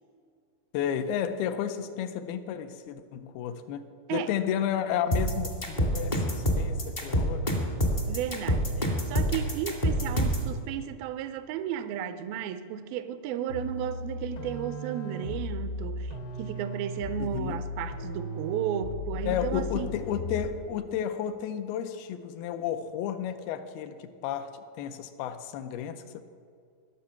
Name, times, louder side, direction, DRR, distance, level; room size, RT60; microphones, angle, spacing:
voice 1, 0.7-7.5 17.2-17.6 19.3-26.2, left 9 dB, 85° left, 2.5 m, -32 dB
sound 1, 5.1-10.5, equal, 35° left, 0.7 m, -26 dB
voice 2, 8.1-20.0, right 9 dB, 85° right, 2.4 m, -34 dB
sound 2, 13.5-20.7, left 1 dB, 70° left, 1.1 m, -36 dB
19.5 x 7.1 x 5.8 m
omnidirectional pair, 4.3 m